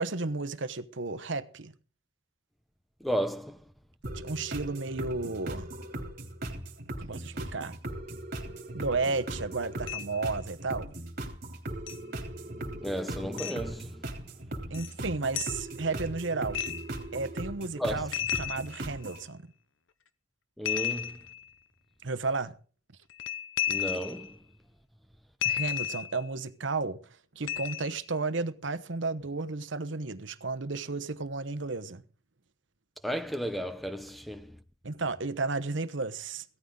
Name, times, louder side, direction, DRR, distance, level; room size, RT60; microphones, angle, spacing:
voice 1, 0.0-1.7 4.1-5.7 7.0-7.8 8.7-10.9 14.7-16.6 17.1-19.4 22.0-22.5 25.4-27.0 27.3-32.0 34.8-36.4, right 3 dB, 65° right, 1.0 m, -33 dB
voice 2, 3.0-3.6 12.0-14.2 17.8-18.1 20.6-21.2 23.7-24.4 33.0-34.6, equal, ahead, 0.8 m, -34 dB
sound 1, 4.0-19.2, right 1 dB, 50° right, 3.3 m, -39 dB
sound 2, 9.9-10.3 11.9-12.0 13.4-13.6 14.7-14.9 15.3-15.6 16.5-17.0 18.1-19.2 20.7-21.5 23.1-24.3 25.4-26.2 27.5-28.0, left 10 dB, 75° left, 0.8 m, -33 dB
17.0 x 13.5 x 3.8 m
head